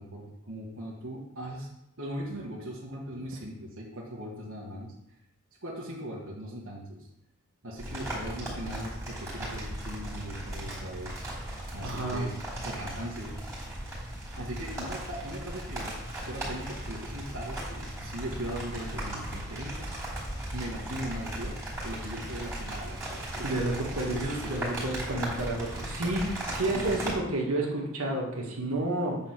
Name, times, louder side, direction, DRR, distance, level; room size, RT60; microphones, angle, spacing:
voice 1, 0.0-1.7 2.0-4.9 5.6-7.1 7.6-11.2 11.7-13.3 14.4-16.0 16.3-19.9 20.5-21.6 21.8-23.6 23.9-24.6 26.7-27.0, right 1 dB, 70° right, -4 dB, 1.5 m, -39 dB
sound 1, 7.8-27.1, right 1 dB, 15° right, 3.1 m, -37 dB
voice 2, 11.6-12.2 23.4-24.2 24.5-29.2, right 2 dB, 85° right, -1 dB, 1.8 m, -30 dB
8.7 x 4.2 x 6.0 m, 0.84 s
head